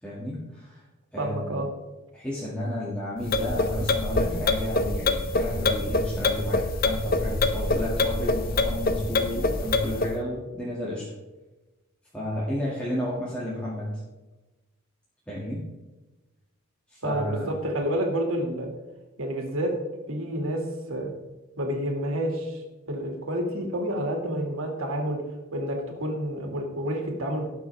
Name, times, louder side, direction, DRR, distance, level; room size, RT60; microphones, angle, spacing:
voice 1, 0.0-0.8 1.1-1.6 2.1-11.0 12.1-14.0 15.3-15.6 16.9-17.5, left 1 dB, 5° left, -8 dB, 2.3 m, -32 dB
voice 2, 1.2-1.7 17.0-18.7 19.2-19.7 20.1-20.6 20.9-21.1 21.6-22.6 22.9-25.2 25.5-27.5, equal, 80° right, 1 dB, 2.4 m, -29 dB
sound 1, 3.2-10.1, left 3 dB, 45° left, 0.8 m, -25 dB
18.5 x 6.3 x 3.5 m, 1.1 s
head